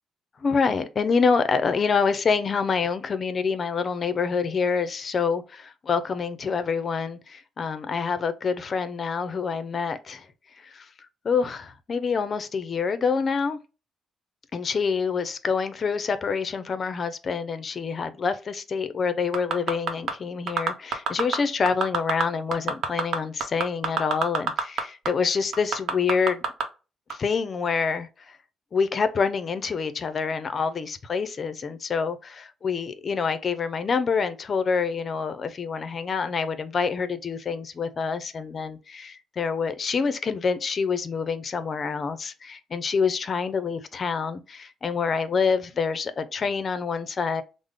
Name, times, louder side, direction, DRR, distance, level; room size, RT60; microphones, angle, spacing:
voice 1, 0.4-10.3 10.6-10.9 11.2-13.6 14.5-26.4 27.1-28.4 28.7-47.4, left 5 dB, 45° left, 0.5 m, -26 dB
sound 1, 19.3-20.1 20.5-21.4 21.7-22.2 22.5-24.8 25.1-25.2 25.5-26.6 27.1-27.2, right 6 dB, 70° right, 0.8 m, -25 dB
3.5 x 2.0 x 3.4 m
cardioid pair, 90°, 0 cm